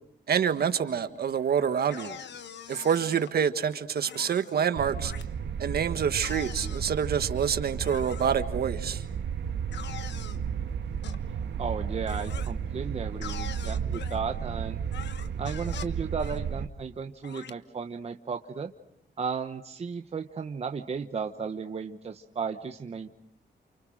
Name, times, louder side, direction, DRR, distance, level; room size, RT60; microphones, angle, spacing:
voice 1, 0.3-2.2 2.7-5.1 5.6-9.0, right 7 dB, 60° right, 1.6 m, -27 dB
sound 1, 1.9-3.3 4.0-4.6 5.0-5.2 6.2-7.0 7.8-8.4 9.7-10.4 11.0-11.2 12.1-12.5 13.2-14.2 14.9-15.9 16.2-16.4 17.2-17.5, left 8 dB, 70° left, 1.3 m, -43 dB
sound 2, 4.7-16.7, right 7 dB, 75° right, 1.5 m, -33 dB
voice 2, 11.6-14.8 15.4-18.7 19.2-23.1, right 5 dB, 35° right, 1.0 m, -34 dB
30.0 x 29.0 x 6.4 m
wide cardioid pair, 180°, 18 cm